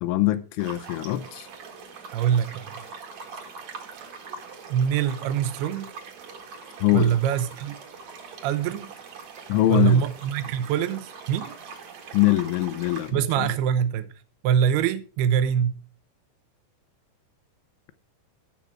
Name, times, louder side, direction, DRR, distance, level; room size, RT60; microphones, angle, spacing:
voice 1, 0.0-1.5 6.8-7.1 9.5-10.0 12.1-13.5, left 15 dB, 80° left, 3.1 m, -23 dB
sound 1, 0.6-13.1, right 4 dB, 55° right, 2.1 m, -42 dB
voice 2, 2.1-2.8 4.7-5.9 6.9-7.8 8.4-8.9 9.7-11.6 13.1-14.1 14.4-15.8, right 8 dB, 75° right, 2.4 m, -24 dB
15.0 x 5.9 x 4.9 m
omnidirectional pair, 5.5 m